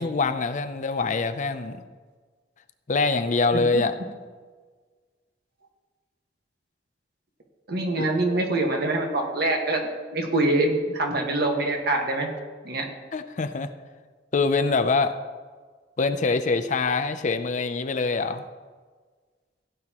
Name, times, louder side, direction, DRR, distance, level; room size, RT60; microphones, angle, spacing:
voice 1, 0.0-1.8 2.9-4.0 8.0-8.1 13.1-13.7 14.3-15.2 16.0-18.4, left 4 dB, 45° left, 10 dB, 0.5 m, -24 dB
voice 2, 7.7-12.3 12.6-12.9, right 2 dB, 65° right, 2 dB, 1.6 m, -25 dB
16.0 x 9.2 x 3.0 m, 1.5 s
head